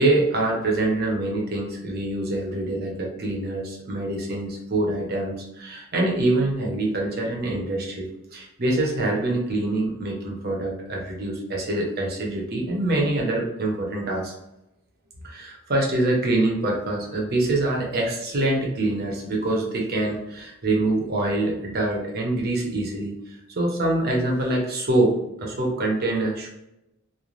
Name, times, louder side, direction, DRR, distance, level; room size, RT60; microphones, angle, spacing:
voice 1, 0.0-14.3 15.2-23.1 23.6-26.5, right 2 dB, 50° right, -1 dB, 0.7 m, -25 dB
3.1 x 2.1 x 2.5 m, 0.90 s
head